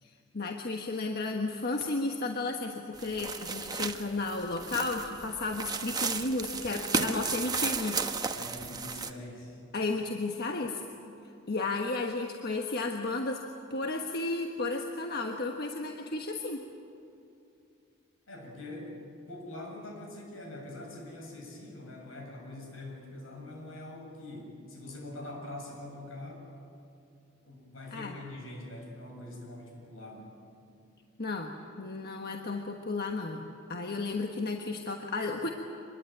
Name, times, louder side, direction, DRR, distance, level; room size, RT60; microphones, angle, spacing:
voice 1, 0.0-8.0 9.7-10.8 11.5-13.4 13.7-16.6 27.9-28.2 31.2-33.4 33.7-35.5, left 3 dB, 50° left, 3 dB, 1.3 m, -33 dB
sound 1, 3.0-9.1, right 4 dB, 20° right, 1.1 m, -34 dB
voice 2, 8.3-9.6 18.3-26.4 27.4-30.3, left 1 dB, 75° left, 1 dB, 7.3 m, -44 dB
25.0 x 21.0 x 9.3 m, 2.6 s
head